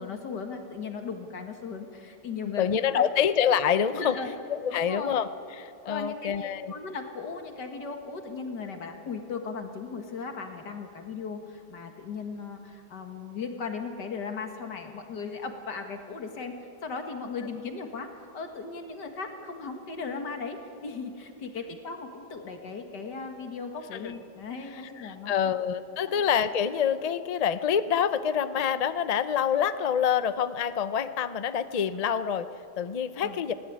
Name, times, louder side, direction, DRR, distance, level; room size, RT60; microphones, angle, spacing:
voice 1, 0.0-3.0 3.9-4.3 4.7-5.2 5.8-6.3 6.7-16.5 16.8-25.3 26.1-26.2 33.2-33.4, left 5 dB, 80° left, 5 dB, 2.4 m, -37 dB
voice 2, 2.4-4.1 4.5-5.3 5.6-6.7 23.9-24.1 25.0-32.5 32.8-33.5, left 8 dB, 65° left, 12 dB, 0.3 m, -26 dB
19.5 x 17.0 x 9.4 m, 2.6 s
omnidirectional pair, 1.8 m